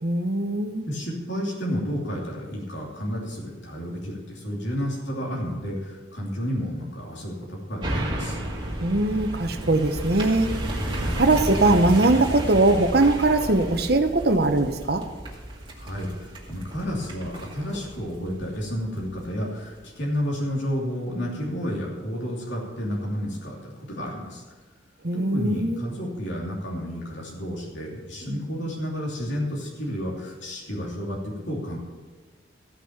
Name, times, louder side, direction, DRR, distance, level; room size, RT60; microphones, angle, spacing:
voice 1, 0.0-0.8 8.8-10.5 11.2-15.0 25.0-25.8, right 2 dB, 55° right, 6 dB, 1.0 m, -21 dB
voice 2, 0.9-8.4 10.9-11.2 15.7-24.4 25.1-31.8, equal, 75° left, -3 dB, 2.9 m, -31 dB
sound 1, 7.8-19.3 19.7-19.8, right 1 dB, 25° right, 2.2 m, -32 dB
15.0 x 6.1 x 7.3 m, 1.4 s
head